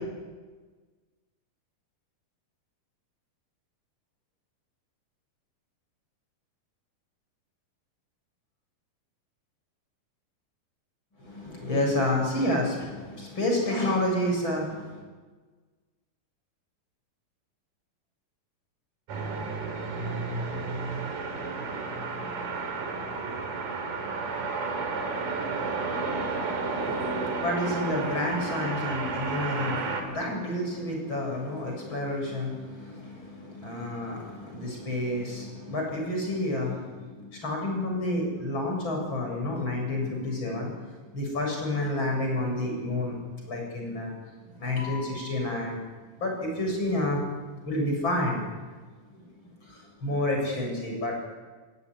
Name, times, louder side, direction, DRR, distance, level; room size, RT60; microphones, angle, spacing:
voice 1, 11.2-15.0 26.5-40.8 41.1-43.2 43.4-44.1 44.5-45.8 46.2-47.2 47.6-48.4 49.1-49.2 49.7-51.3, left 1 dB, 30° left, 1 dB, 8.0 m, -30 dB
sound 1, 19.1-30.0, right 4 dB, 60° right, 4.8 m, -32 dB
27.5 x 19.0 x 9.8 m, 1.4 s
omnidirectional pair, 4.2 m